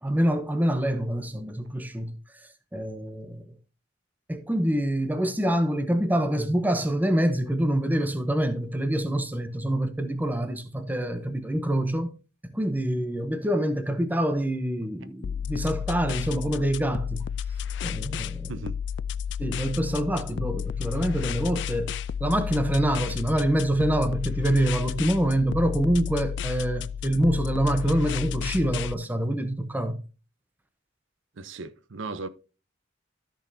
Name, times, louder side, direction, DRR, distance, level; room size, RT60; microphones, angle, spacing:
voice 1, 0.0-3.6 4.3-12.1 12.4-17.3 17.8-18.5 19.4-21.9 22.2-30.0, right 1 dB, 10° right, 0.8 m, -26 dB
sound 1, 15.2-28.9, left 8 dB, 60° left, 0.3 m, -32 dB
voice 2, 31.4-32.3, right 3 dB, 75° right, 0.7 m, -36 dB
13.5 x 6.3 x 2.7 m
head